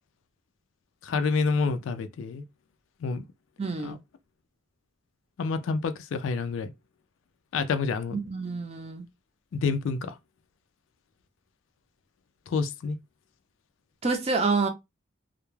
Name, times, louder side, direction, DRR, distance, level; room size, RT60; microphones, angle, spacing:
voice 1, 1.0-2.4 3.0-3.2 3.8-4.0 5.4-6.7 7.5-8.2 9.5-10.2 12.5-13.0, left 4 dB, 80° left, 0.3 m, -28 dB
voice 2, 3.6-4.0 8.1-9.1 14.0-14.7, right 4 dB, 30° right, 0.5 m, -27 dB
2.2 x 2.0 x 3.0 m
head